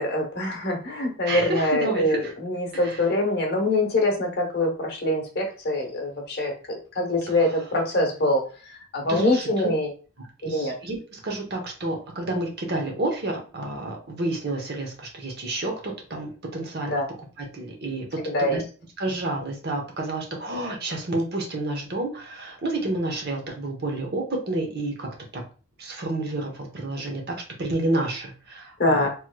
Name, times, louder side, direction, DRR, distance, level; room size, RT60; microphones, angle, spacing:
voice 1, 0.0-8.4 8.9-9.9 10.4-10.7 16.9-17.1 18.2-18.6 28.8-29.1, left 1 dB, 50° left, 1 dB, 0.9 m, -24 dB
voice 2, 1.3-2.3 2.7-3.1 7.3-7.4 9.1-9.7 10.4-17.0 17.4-18.6 19.0-25.4 25.8-29.1, right 2 dB, 50° right, 1 dB, 0.9 m, -30 dB
3.1 x 3.0 x 2.2 m, 0.36 s
head